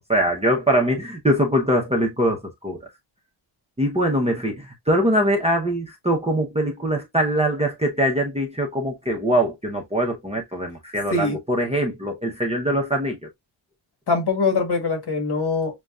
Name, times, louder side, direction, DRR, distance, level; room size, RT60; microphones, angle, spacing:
voice 1, 0.1-2.8 3.8-13.2, equal, 15° right, 0.7 m, -22 dB
voice 2, 14.1-15.8, left 4 dB, 55° left, 1.5 m, -23 dB
6.5 x 2.2 x 2.3 m
wide cardioid pair, 170°, 46 cm